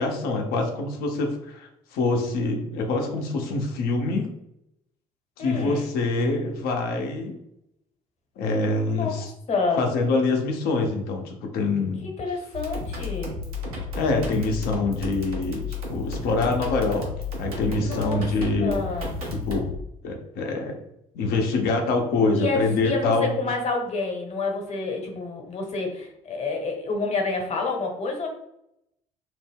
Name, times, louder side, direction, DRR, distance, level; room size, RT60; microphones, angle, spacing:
voice 1, 0.0-4.3 5.4-7.3 8.4-9.3 9.8-12.0 13.9-17.1 17.4-18.7 19.3-19.7 20.0-20.8 21.1-23.3, left 3 dB, 60° left, 2 dB, 0.7 m, -25 dB
voice 2, 5.4-5.9 8.9-9.8 12.0-13.4 17.8-18.2 18.6-19.2 22.3-28.3, left 3 dB, 40° left, 2 dB, 1.0 m, -28 dB
sound 1, 12.5-19.8, left 3 dB, 80° right, 0.8 m, -32 dB
2.6 x 2.1 x 3.5 m, 0.80 s
hypercardioid pair, 55°, 18 cm